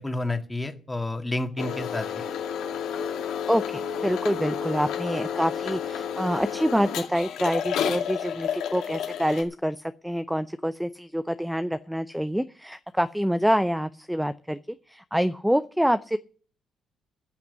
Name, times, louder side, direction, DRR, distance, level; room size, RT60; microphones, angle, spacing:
voice 1, 0.0-2.1, left 2 dB, 15° left, 6 dB, 2.0 m, -30 dB
sound 1, 1.6-9.4, left 8 dB, 85° left, 2.5 m, -31 dB
voice 2, 3.5-16.2, equal, ahead, 12 dB, 0.5 m, -26 dB
14.0 x 5.9 x 9.3 m, 0.42 s
cardioid pair, 90°, 0 cm